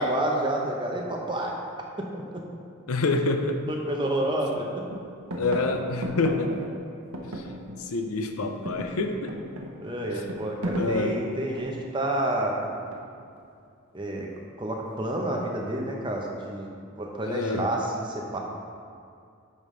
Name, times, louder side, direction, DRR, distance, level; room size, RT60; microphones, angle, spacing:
voice 1, 0.0-1.6 2.0-2.4 3.7-4.7 9.8-12.7 13.9-14.3 14.6-16.7 17.0-18.4, right 1 dB, 20° right, 0 dB, 0.7 m, -29 dB
voice 2, 2.9-3.6 5.4-6.5 7.2-7.4 7.8-9.4 10.7-11.2 17.2-17.7, left 3 dB, 80° left, 6 dB, 0.6 m, -27 dB
sound 1, 3.6-3.7 4.0-4.6 4.9-8.0 8.3-11.9 12.9-13.4, equal, 85° right, 0.9 m, -36 dB
9.1 x 5.2 x 3.2 m, 2.4 s
head